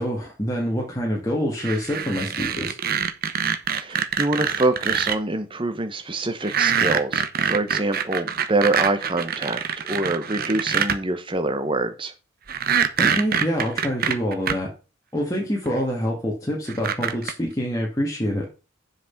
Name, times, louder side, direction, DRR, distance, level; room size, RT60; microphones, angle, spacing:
voice 1, 0.0-2.8 13.0-14.7 15.1-18.5, equal, 15° left, 2.1 m, -26 dB
sound 1, 1.6-5.2 6.4-11.0 12.5-14.5 15.7-15.8 16.7-17.3, right 7 dB, 45° right, 0.9 m, -24 dB
voice 2, 3.7-12.1, right 2 dB, 25° right, 1.1 m, -25 dB
7.6 x 6.0 x 5.9 m
head